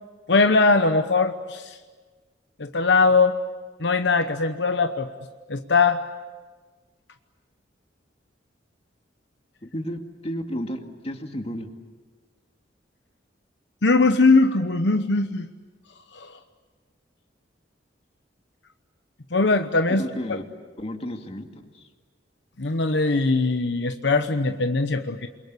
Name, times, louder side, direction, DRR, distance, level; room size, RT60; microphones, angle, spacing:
voice 1, 0.3-1.8 2.6-3.4 3.8-5.1 5.5-6.0 13.8-15.5 16.1-16.4 19.3-20.0 20.3-20.4 22.6-25.3, left 3 dB, 70° left, 7 dB, 1.0 m, -21 dB
voice 2, 9.6-11.7 20.0-20.4 20.8-21.9, equal, 35° left, 4 dB, 2.2 m, -33 dB
28.0 x 23.0 x 8.3 m, 1.4 s
head